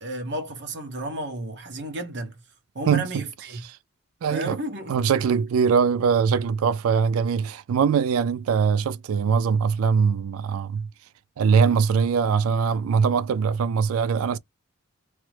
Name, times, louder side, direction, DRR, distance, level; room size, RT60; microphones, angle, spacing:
voice 1, 0.0-2.4 2.7-3.6 4.3-5.1, right 1 dB, 55° right, 1.0 m, -32 dB
voice 2, 4.2-4.6 4.9-10.9 11.4-14.4, right 6 dB, 75° right, 0.3 m, -22 dB
3.2 x 2.0 x 3.1 m
head